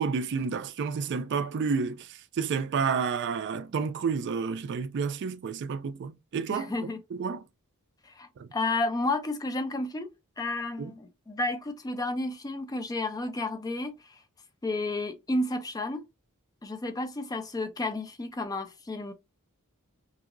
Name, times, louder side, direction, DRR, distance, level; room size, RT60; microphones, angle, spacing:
voice 1, 0.0-7.4 8.4-8.5 10.8-10.9, right 5 dB, 55° right, 0.3 m, -30 dB
voice 2, 6.5-7.0 8.0-10.1 10.4-13.9 14.6-16.0 16.6-19.1, left 2 dB, 15° left, 0.4 m, -31 dB
2.9 x 2.7 x 2.4 m
head